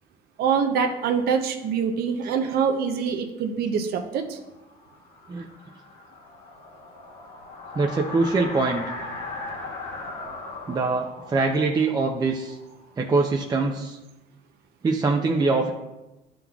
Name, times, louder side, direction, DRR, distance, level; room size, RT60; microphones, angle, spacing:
voice 1, 0.4-4.4, right 6 dB, 65° right, 5 dB, 0.6 m, -24 dB
sound 1, 4.5-13.3, left 2 dB, 75° left, 1.5 m, -39 dB
voice 2, 7.7-8.9 10.7-12.6 13.0-14.0 14.8-15.7, right 3 dB, 25° right, 2 dB, 0.5 m, -23 dB
11.5 x 3.8 x 2.3 m, 1.0 s
cardioid pair, 110°, 17 cm